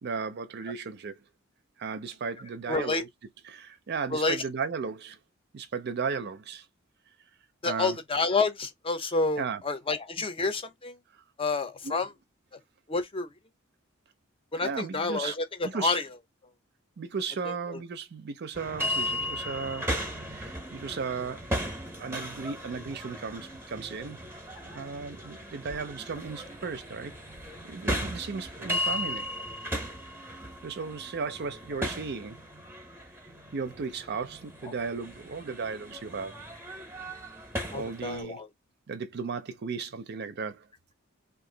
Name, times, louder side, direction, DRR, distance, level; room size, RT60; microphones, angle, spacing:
voice 1, 0.0-1.2 1.8-3.1 3.4-5.2 5.5-6.7 7.6-8.0 9.4-9.6 10.2-10.3 11.8-12.0 14.6-15.3 15.6-16.0 17.0-19.9 20.3-21.5 22.0-24.2 24.7-27.1 27.6-29.3 30.6-32.4 33.5-36.4 37.7-38.4 38.9-40.7, right 5 dB, 55° right, 0.5 m, -35 dB
voice 2, 2.7-3.0 4.1-4.4 7.6-11.0 11.4-12.1 12.5-12.6 12.9-13.3 14.5-16.0 17.7-17.8 37.7-38.5, left 3 dB, 25° left, 0.6 m, -29 dB
sound 1, 18.5-38.2, equal, 10° right, 0.8 m, -36 dB
2.9 x 2.5 x 3.8 m
head